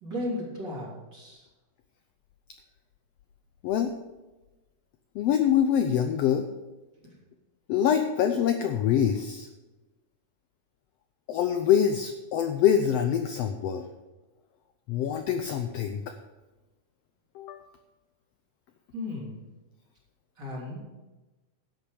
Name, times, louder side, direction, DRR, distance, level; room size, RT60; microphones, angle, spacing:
voice 1, 0.0-1.4 18.9-19.4 20.4-20.8, left 1 dB, 35° right, -5 dB, 3.8 m, -35 dB
voice 2, 5.1-6.5 7.7-9.5 11.3-13.9 14.9-16.1 17.3-17.7, left 9 dB, 80° left, 7 dB, 1.4 m, -25 dB
12.0 x 8.2 x 5.0 m, 1.1 s
omnidirectional pair, 3.5 m